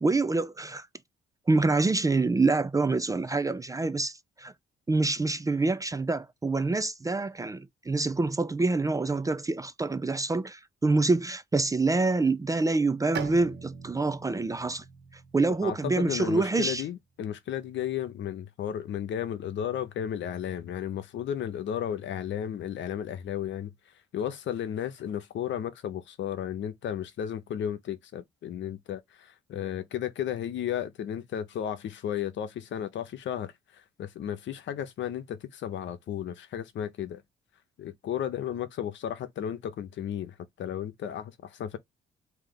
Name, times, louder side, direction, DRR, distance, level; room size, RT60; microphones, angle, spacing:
voice 1, 0.0-0.9 1.5-4.5 4.9-14.8 15.3-16.8, right 3 dB, 15° right, 0.4 m, -26 dB
Bowed string instrument, 13.1-16.8, right 6 dB, 60° right, 1.1 m, -41 dB
voice 2, 15.6-23.7 24.1-37.2 37.8-41.8, left 9 dB, 70° left, 0.8 m, -34 dB
3.3 x 2.9 x 3.7 m
cardioid pair, 90°, 20 cm